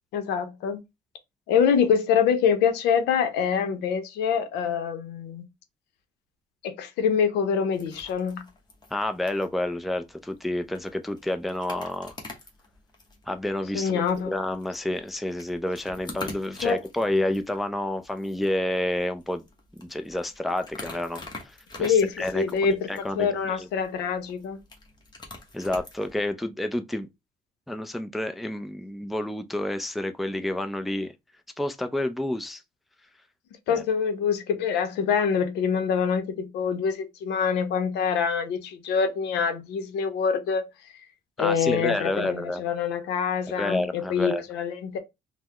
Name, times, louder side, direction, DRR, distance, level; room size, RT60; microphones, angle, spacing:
voice 1, 0.1-0.8 1.5-5.4 6.6-8.4 13.7-14.3 16.6-16.8 21.8-24.6 33.7-40.6 41.4-45.0, left 7 dB, 85° left, 0.6 m, -25 dB
sound 1, 7.7-26.3, left 3 dB, 25° left, 0.9 m, -46 dB
voice 2, 8.9-12.1 13.3-19.4 19.7-22.4 22.9-23.7 25.5-27.1 27.7-31.1 31.6-32.6 33.7-33.8 41.4-42.6 43.6-44.4, left 1 dB, ahead, 0.3 m, -29 dB
3.5 x 2.1 x 2.9 m
cardioid pair, 110°, 17 cm